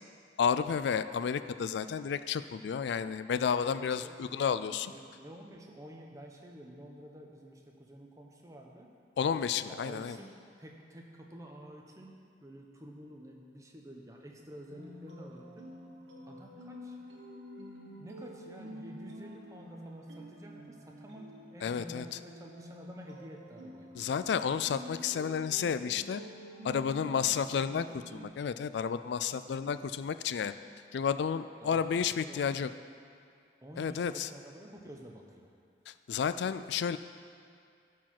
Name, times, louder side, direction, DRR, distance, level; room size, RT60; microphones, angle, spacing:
voice 1, 0.4-4.9 9.2-10.2 21.6-22.0 24.0-26.2 26.6-30.6 30.9-32.7 33.8-34.3 35.9-37.0, left 7 dB, 70° left, 12 dB, 0.3 m, -31 dB
voice 2, 3.7-4.2 4.9-8.9 9.7-15.7 16.3-17.0 17.9-23.9 27.0-27.3 29.3-29.7 31.6-32.0 32.2-32.5 33.6-35.5, equal, 20° right, 0 dB, 0.9 m, -50 dB
sound 1, 14.7-28.2, equal, 85° right, 1.4 m, -48 dB
12.0 x 4.7 x 5.9 m, 2.4 s
head